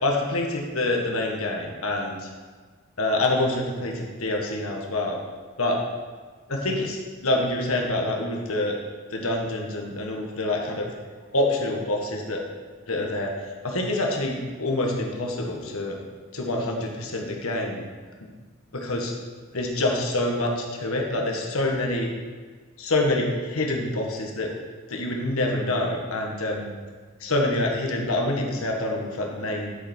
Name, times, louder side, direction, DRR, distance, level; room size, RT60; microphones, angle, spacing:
voice 1, 0.0-2.3 3.0-5.2 5.6-5.8 6.5-8.8 9.1-10.9 11.3-12.4 12.9-16.0 16.3-17.8 18.7-19.1 19.5-22.1 22.8-24.5 24.9-26.7 27.2-29.7, left 2 dB, 75° left, 0 dB, 1.6 m, -26 dB
11.5 x 6.9 x 4.5 m, 1.5 s
head